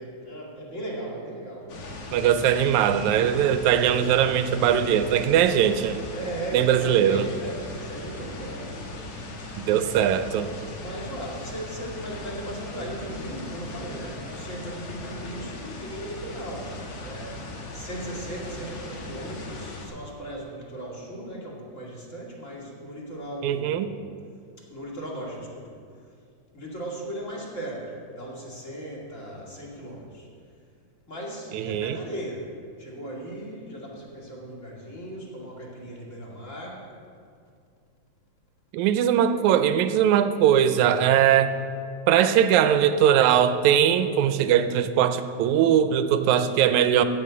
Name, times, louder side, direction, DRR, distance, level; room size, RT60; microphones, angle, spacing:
voice 1, 0.0-1.9 6.1-8.8 9.3-9.6 10.7-24.2 24.7-25.7 26.5-30.3 31.1-32.5 32.8-36.9, right 1 dB, 25° left, -4 dB, 2.3 m, -37 dB
sound 1, 1.7-19.9, left 2 dB, 75° left, 2.9 m, -38 dB
voice 2, 2.1-6.0 6.5-7.3 9.6-10.5 23.4-23.9 31.5-32.0 38.7-41.6 42.1-47.0, right 9 dB, 85° right, 10 dB, 2.0 m, -20 dB
15.0 x 5.7 x 8.3 m, 2.2 s
omnidirectional pair, 3.3 m